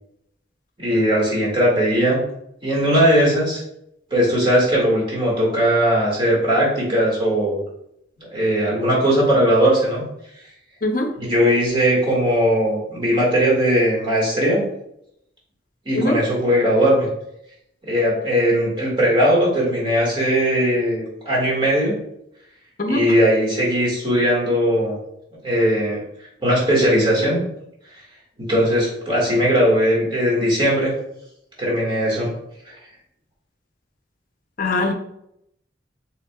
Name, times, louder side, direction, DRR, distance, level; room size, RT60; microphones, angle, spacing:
voice 1, 0.8-2.2 2.6-3.6 4.1-7.6 8.3-10.0 11.2-14.6 15.9-17.1 17.9-22.0 22.9-25.0 25.4-26.0 26.4-27.4 28.4-30.9 31.6-32.3, equal, 25° right, -4 dB, 1.8 m, -19 dB
voice 2, 10.8-11.1 15.9-16.2 22.8-23.1 34.6-34.9, left 1 dB, 50° left, 4 dB, 0.7 m, -21 dB
6.3 x 3.5 x 2.3 m, 0.76 s
head